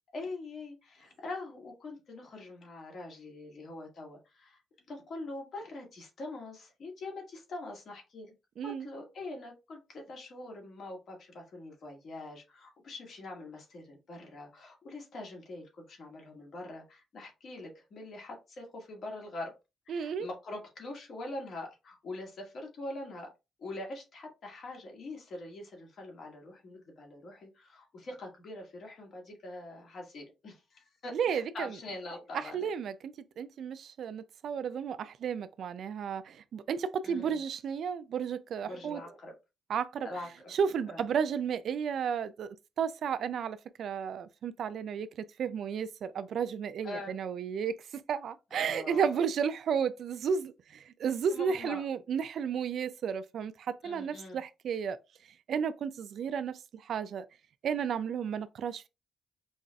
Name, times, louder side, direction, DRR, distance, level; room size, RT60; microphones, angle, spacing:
voice 1, 0.1-4.6 4.9-8.3 8.6-19.5 19.9-23.3 23.6-32.7 37.0-37.4 38.6-39.3 40.0-40.5 40.9-41.0 46.8-47.2 48.5-49.2 51.3-51.8 53.8-54.4, left 2 dB, 60° left, 1.8 m, -43 dB
voice 2, 8.6-8.9 19.9-20.3 31.1-31.7 32.5-39.0 39.7-40.1 40.5-45.1 45.4-55.0 55.5-57.3 57.6-58.8, right 7 dB, 70° right, 0.3 m, -33 dB
5.2 x 2.4 x 2.3 m
cardioid pair, 80°, 0 cm